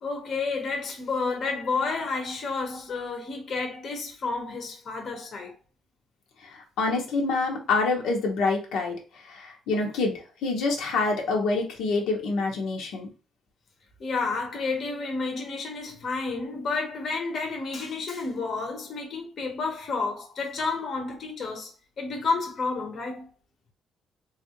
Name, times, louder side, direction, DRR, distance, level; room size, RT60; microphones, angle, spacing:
voice 1, 0.0-5.5 14.0-21.7 22.0-23.3, left 4 dB, 45° left, 0.9 m, -30 dB
voice 2, 6.5-8.9 9.3-13.1, left 3 dB, 85° left, 0.9 m, -26 dB
3.6 x 2.4 x 2.8 m
cardioid pair, 135°, 0 cm